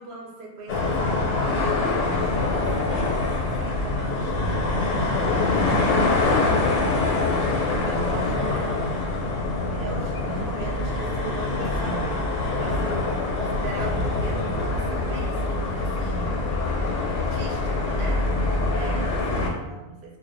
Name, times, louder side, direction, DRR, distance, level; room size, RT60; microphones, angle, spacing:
voice 1, 0.0-5.6 6.2-7.2 7.8-9.0 9.7-16.4 17.3-18.4 18.7-20.2, right 3 dB, 65° right, -1 dB, 0.8 m, -38 dB
sound 1, 0.7-19.5, left 2 dB, 90° left, 1.0 m, -24 dB
2.4 x 2.2 x 2.5 m, 0.99 s
omnidirectional pair, 1.2 m